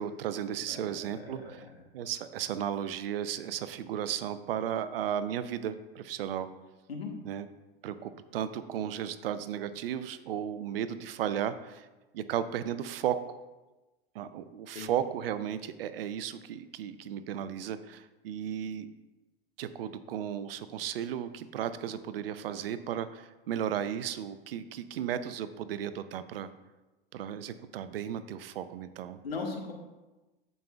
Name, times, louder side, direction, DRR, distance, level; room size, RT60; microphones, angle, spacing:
voice 1, 0.0-1.6 1.9-6.5 7.3-7.5 7.8-11.9 12.1-13.4 14.1-18.9 19.6-26.5 27.1-29.2, right 9 dB, 75° right, 13 dB, 0.6 m, -35 dB
voice 2, 0.7-1.8 6.9-7.1 14.7-14.9 29.2-29.7, left 4 dB, 90° left, 1 dB, 1.4 m, -39 dB
14.0 x 5.4 x 2.4 m, 1.1 s
hypercardioid pair, 90°, 30 cm